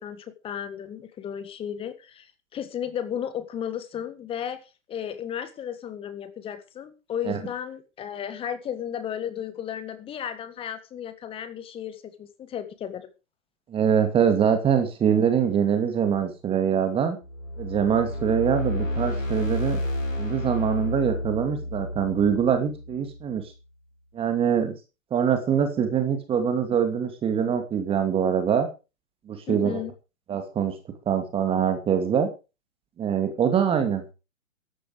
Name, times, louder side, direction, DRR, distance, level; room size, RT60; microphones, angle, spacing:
voice 1, 0.0-13.1 29.5-29.9, left 9 dB, 15° left, 12 dB, 1.7 m, -34 dB
voice 2, 13.7-17.2 17.6-19.8 20.1-23.4 24.1-24.7 25.1-28.7 29.3-29.8 30.3-30.7 31.1-32.3 33.0-34.1, right 8 dB, 15° right, 7 dB, 2.4 m, -24 dB
sound 1, 17.2-23.4, left 1 dB, 75° left, 5.1 m, -31 dB
14.5 x 11.5 x 5.0 m, 0.31 s
figure-of-eight pair, 120°, 40 cm